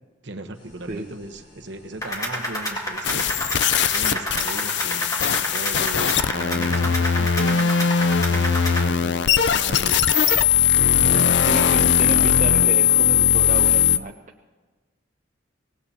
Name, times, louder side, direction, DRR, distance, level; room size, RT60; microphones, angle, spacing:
voice 1, 0.2-3.3 3.8-7.8 8.3-10.1 10.7-11.4, right 2 dB, 65° right, 6 dB, 1.1 m, -37 dB
sound 1, 0.5-12.6, equal, 85° left, 5.8 m, -50 dB
sound 2, 2.0-8.9, left 1 dB, 20° left, 1.9 m, -29 dB
sound 3, 3.0-14.0, left 8 dB, 60° left, 0.5 m, -19 dB
voice 2, 11.0-14.1, right 2 dB, 40° right, 2 dB, 0.6 m, -31 dB
24.0 x 18.0 x 2.9 m, 1.3 s
head